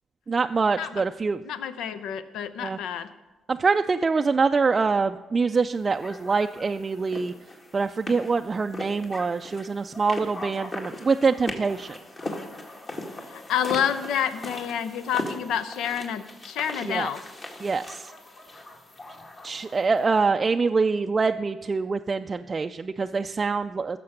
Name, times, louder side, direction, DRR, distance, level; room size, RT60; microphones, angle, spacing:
voice 1, 0.3-1.4 2.6-2.8 3.5-7.3 7.7-12.0 16.8-17.1 17.6-18.1 19.4-24.0, right 4 dB, 30° right, 6 dB, 0.3 m, -25 dB
voice 2, 1.5-3.1 13.2-17.2, left 9 dB, 85° left, 12 dB, 0.6 m, -29 dB
sound 1, 6.0-20.1, left 2 dB, 35° left, 1.9 m, -39 dB
15.5 x 6.8 x 6.5 m, 1.1 s
cardioid pair, 90°, 0 cm